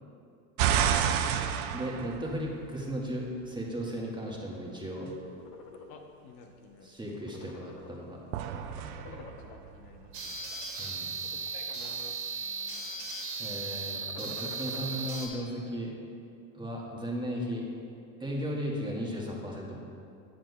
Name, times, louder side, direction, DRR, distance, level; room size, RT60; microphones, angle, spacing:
sound 1, 0.6-3.0 8.3-10.4, right 8 dB, 75° right, 0.6 m, -30 dB
voice 1, 1.7-5.1 6.8-8.3 10.8-11.1 13.4-15.9 16.5-17.7 18.2-19.8, equal, 10° right, -3 dB, 1.3 m, -36 dB
sound 2, 5.1-5.9 6.4-6.6 6.9-8.2 8.6-9.7 10.3-10.8 11.4-12.1 12.4-12.9 13.8-15.1, left 5 dB, 70° left, 0.9 m, -49 dB
voice 2, 5.9-6.9 9.1-10.4 11.2-12.2 12.4-12.9, left 5 dB, 55° left, 3 dB, 0.7 m, -52 dB
sound 3, 10.1-15.3, right 4 dB, 40° right, 1.1 m, -36 dB
8.8 x 7.5 x 2.2 m, 2.5 s
hypercardioid pair, 90°, 45 cm